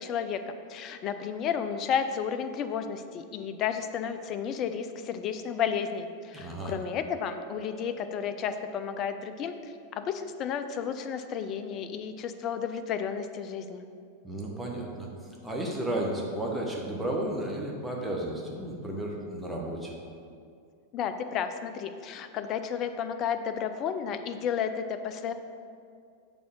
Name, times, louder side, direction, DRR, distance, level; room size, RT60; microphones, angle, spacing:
voice 1, 0.0-13.8 20.9-25.3, left 7 dB, 35° left, 9 dB, 0.4 m, -32 dB
voice 2, 6.3-6.7 14.2-15.1 15.4-19.9, right 1 dB, 5° right, -2 dB, 1.1 m, -33 dB
Chink clink, 6.6-10.8, right 1 dB, 50° left, 1.1 m, -50 dB
6.1 x 3.5 x 5.8 m, 2.3 s
figure-of-eight pair, 90°, 0 cm